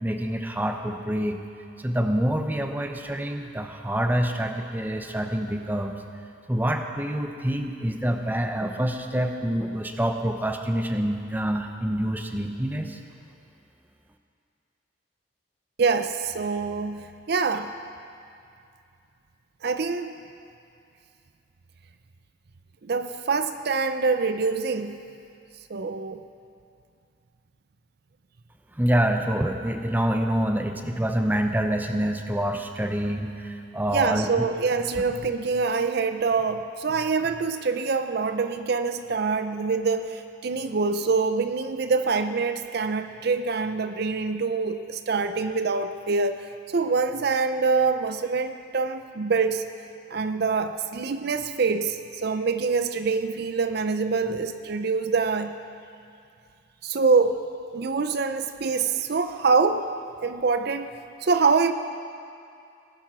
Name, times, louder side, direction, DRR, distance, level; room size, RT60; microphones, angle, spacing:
voice 1, 0.0-1.4 1.8-5.9 6.5-13.0 28.8-34.3, right 1 dB, 10° right, 5 dB, 0.7 m, -26 dB
voice 2, 15.8-17.7 19.6-20.1 22.8-25.0 25.7-26.2 33.9-49.6 50.1-55.6 56.8-57.4 57.7-59.9 60.2-60.9 61.2-61.7, right 4 dB, 50° right, 9 dB, 0.5 m, -25 dB
18.5 x 10.5 x 6.1 m, 2.4 s
head